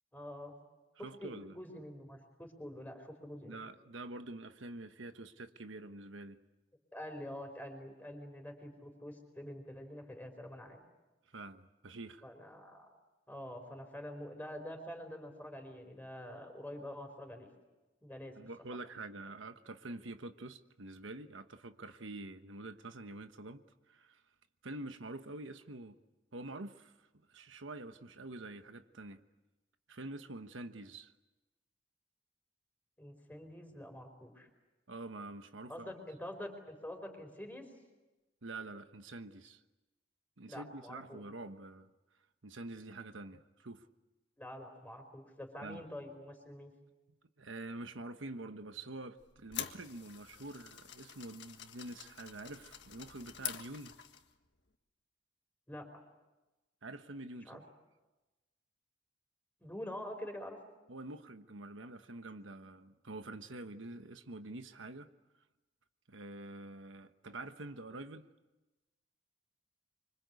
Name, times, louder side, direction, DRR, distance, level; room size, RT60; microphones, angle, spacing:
voice 1, 0.1-0.5 1.0-3.6 6.9-10.8 12.2-12.9 13.3-17.5 18.0-18.3 33.0-34.5 35.7-37.6 40.5-41.2 44.4-46.7 55.7-56.0 57.5-57.6 59.6-60.6, left 1 dB, 10° left, 4 dB, 4.7 m, -46 dB
voice 2, 0.9-1.6 3.4-6.4 11.3-12.2 18.4-24.2 24.6-26.0 26.3-29.2 29.9-31.1 34.9-35.9 38.4-39.6 40.4-41.9 42.4-43.9 45.6-45.8 47.4-53.9 56.8-57.6 60.9-65.1 66.1-68.2, right 2 dB, 80° right, 8 dB, 1.2 m, -46 dB
sound 1, 49.2-54.3, left 10 dB, 65° left, 1.7 m, -46 dB
26.0 x 25.0 x 8.3 m, 1.1 s
head